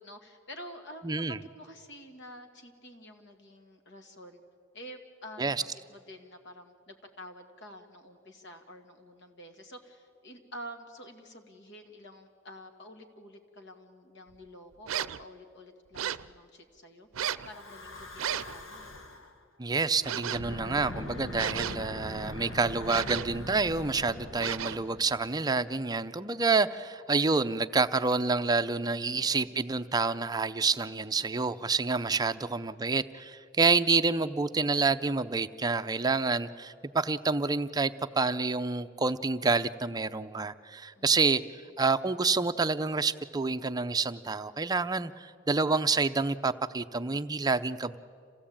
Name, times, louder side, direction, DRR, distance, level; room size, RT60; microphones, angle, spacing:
voice 1, 0.0-4.4 4.7-19.0 32.4-32.7 40.9-41.3, equal, 60° left, 5 dB, 2.2 m, -49 dB
voice 2, 1.0-1.4 5.4-5.6 19.6-41.4 41.8-48.0, right 4 dB, 20° right, 10 dB, 0.6 m, -28 dB
sound 1, 14.9-15.2 15.9-16.3 17.1-17.5 18.2-18.6 20.0-20.5 21.3-22.0 22.8-23.4 24.4-24.9, right 9 dB, 85° right, 0.5 m, -34 dB
Breathing / Wind, 17.4-19.3 20.2-25.6, left 1 dB, 80° left, 1.7 m, -42 dB
27.0 x 16.5 x 8.7 m, 2.3 s
head